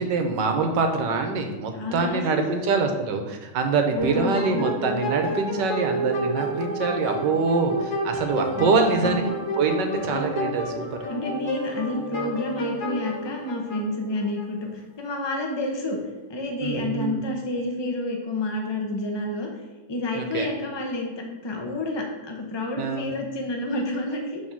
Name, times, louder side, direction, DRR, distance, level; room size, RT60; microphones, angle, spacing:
voice 1, 0.0-9.2 9.6-11.0 16.6-17.2 20.1-20.5 22.8-23.1, right 4 dB, 70° right, 5 dB, 1.4 m, -24 dB
voice 2, 1.7-2.6 3.9-4.3 8.6-9.3 11.1-16.0 16.3-19.5 19.9-24.4, left 2 dB, 30° left, 1 dB, 0.5 m, -29 dB
sound 1, 4.0-14.4, equal, 65° left, 1.7 m, -30 dB
6.4 x 3.6 x 6.1 m, 1.2 s
omnidirectional pair, 2.1 m